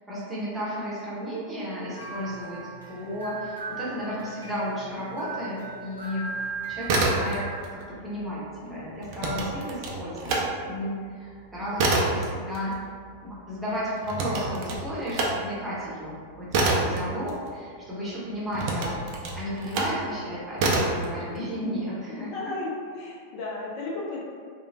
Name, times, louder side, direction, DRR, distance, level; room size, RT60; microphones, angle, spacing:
voice 1, 0.1-2.6 2.9-6.3 6.7-12.9 13.2-22.5, equal, 10° right, -9 dB, 0.8 m, -33 dB
sound 1, 1.9-7.6, right 4 dB, 90° left, 0.6 m, -38 dB
sound 2, 6.7-7.7 8.0-10.5 10.9-17.9 18.5-20.0 20.6-21.1, right 2 dB, 45° right, 0.4 m, -27 dB
voice 2, 22.1-24.2, left 3 dB, 45° left, -5 dB, 0.4 m, -34 dB
3.0 x 2.1 x 2.3 m, 2.1 s
figure-of-eight pair, 90°, 0 cm